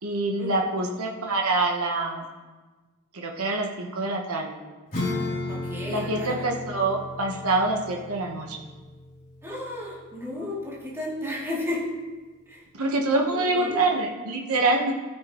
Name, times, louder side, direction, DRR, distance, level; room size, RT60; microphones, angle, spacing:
voice 1, 0.0-2.2 3.1-4.6 5.9-8.6 12.7-14.9, right 2 dB, 80° right, 1 dB, 1.2 m, -25 dB
Acoustic guitar / Strum, 4.9-10.9, left 2 dB, 40° left, 3.4 m, -35 dB
voice 2, 5.5-6.5 9.4-11.8 12.5-12.6 13.3-13.8, left 1 dB, 10° right, -7 dB, 2.8 m, -33 dB
13.5 x 9.4 x 3.1 m, 1.3 s
head